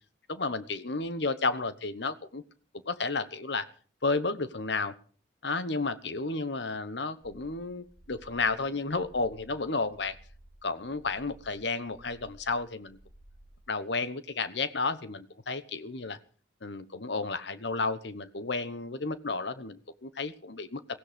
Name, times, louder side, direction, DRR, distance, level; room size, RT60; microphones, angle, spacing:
voice 1, 0.3-2.4 2.9-3.7 4.0-4.9 5.4-10.2 10.6-13.0 13.7-16.2 16.6-20.8, left 3 dB, 70° left, 13 dB, 1.1 m, -32 dB
sound 1, 7.2-13.7, right 1 dB, 45° left, 4.6 m, -56 dB
16.5 x 16.0 x 5.2 m, 0.41 s
head